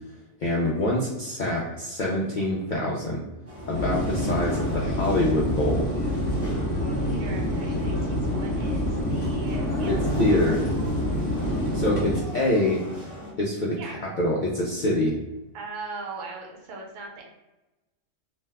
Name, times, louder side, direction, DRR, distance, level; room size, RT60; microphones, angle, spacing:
voice 1, 0.4-3.2 3.7-5.9 9.9-10.6 11.7-12.8 13.4-15.2, left 1 dB, 65° left, -4 dB, 0.4 m, -25 dB
sound 1, 3.5-13.3, equal, 15° right, 0.6 m, -38 dB
sound 2, 3.7-12.2, equal, 35° left, 1.0 m, -27 dB
voice 2, 7.0-10.0 10.2-10.6 13.7-14.0 15.5-17.2, right 3 dB, 80° right, 0 dB, 1.0 m, -40 dB
2.6 x 2.1 x 3.3 m, 1.0 s
omnidirectional pair, 1.3 m